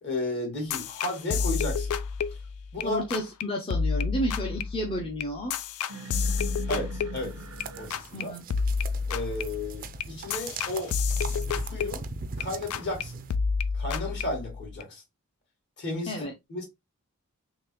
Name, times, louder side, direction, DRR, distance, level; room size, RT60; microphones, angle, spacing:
voice 1, 0.0-1.9 2.7-3.0 6.7-7.3 7.8-8.4 9.1-10.9 11.6-12.0 12.4-13.2 13.7-15.0 15.8-16.6, left 1 dB, 50° left, 1.8 m, -33 dB
sound 1, 0.7-2.8 3.1-3.4 3.7-7.6 7.9-8.2 8.5-12.4 12.7-13.0 13.3-14.8, left 5 dB, 90° left, 0.4 m, -30 dB
voice 2, 2.8-5.5 8.1-8.4 16.1-16.3, equal, 25° left, 0.6 m, -31 dB
sound 2, 5.9-10.9, right 4 dB, 85° right, 0.7 m, -44 dB
sound 3, 7.2-13.3, right 5 dB, 40° right, 0.4 m, -41 dB
3.8 x 2.9 x 3.0 m
head